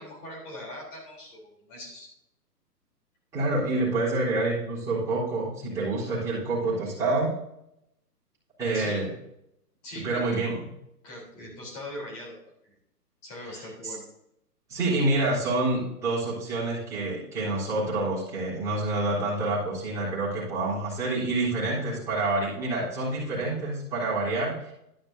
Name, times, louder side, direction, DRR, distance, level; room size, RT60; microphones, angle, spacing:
voice 1, 0.0-2.1 8.7-9.0 9.8-10.4 11.0-12.4 12.6-12.7 13.2-14.0, left 1 dB, 25° left, -2 dB, 3.6 m, -41 dB
voice 2, 3.3-7.3 8.6-9.1 10.0-10.6 13.5-14.0 14.7-24.6, right 2 dB, 5° right, -12 dB, 3.7 m, -27 dB
11.5 x 10.0 x 2.8 m, 0.80 s
figure-of-eight pair, 135°, 49 cm